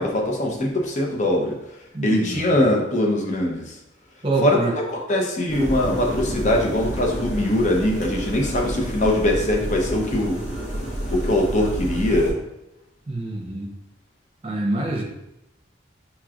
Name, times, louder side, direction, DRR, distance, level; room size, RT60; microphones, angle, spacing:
voice 1, 0.0-1.6 2.0-3.6 4.4-10.4 11.1-12.4, left 1 dB, 40° left, 1 dB, 0.7 m, -22 dB
voice 2, 1.9-2.6 4.2-4.7 13.1-13.7 14.4-15.0, right 2 dB, 30° right, -1 dB, 0.8 m, -26 dB
sound 1, 5.5-12.3, equal, 85° left, 1.1 m, -29 dB
5.7 x 3.0 x 2.4 m, 0.90 s
head